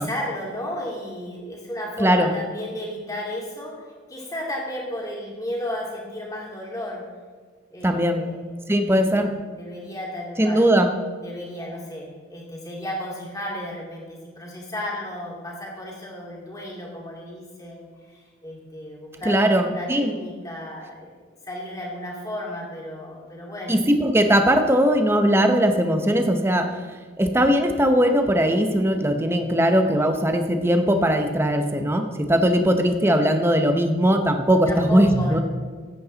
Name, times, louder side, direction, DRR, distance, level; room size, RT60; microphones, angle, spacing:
voice 1, 0.0-7.0 7.7-8.4 8.8-10.6 11.2-21.1 21.4-23.7 29.9-30.2 34.7-35.4, left 1 dB, 20° left, -2 dB, 2.5 m, -34 dB
voice 2, 2.0-2.3 7.8-8.2 8.7-9.3 10.4-10.9 19.2-20.1 23.7-26.8 27.2-35.4, equal, 10° right, 6 dB, 0.8 m, -19 dB
14.5 x 8.6 x 4.0 m, 1.5 s
head